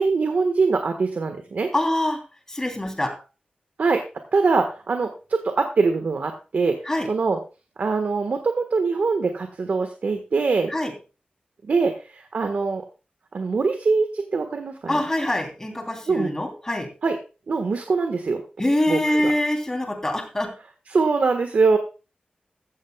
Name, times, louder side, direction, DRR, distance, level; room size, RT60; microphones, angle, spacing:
voice 1, 0.0-1.7 3.8-4.0 4.3-6.8 7.1-7.4 7.8-10.7 11.7-12.8 13.3-15.0 16.1-16.3 17.0-17.2 17.5-18.4 18.9-19.3 20.9-21.8, right 4 dB, 65° right, 6 dB, 1.3 m, -23 dB
voice 2, 1.7-2.2 2.5-3.2 6.8-7.1 10.7-10.9 14.9-16.9 18.6-20.6, left 1 dB, 15° left, 3 dB, 3.1 m, -24 dB
15.0 x 14.0 x 2.3 m, 0.32 s
wide cardioid pair, 135°, 3 cm